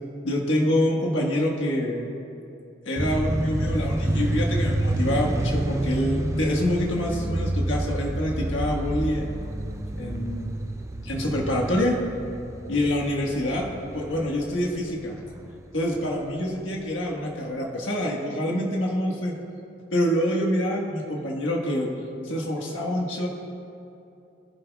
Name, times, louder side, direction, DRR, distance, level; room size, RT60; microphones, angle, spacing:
voice 1, 0.2-2.0 2.8-9.3 9.9-10.5 11.0-12.0 12.7-13.7 13.9-15.1 15.7-19.3 19.9-21.9 22.2-23.3, left 1 dB, 75° left, -2 dB, 1.5 m, -26 dB
sound 1, 3.0-16.1, right 1 dB, 15° right, 0.4 m, -29 dB
23.5 x 11.0 x 2.3 m, 2.7 s
head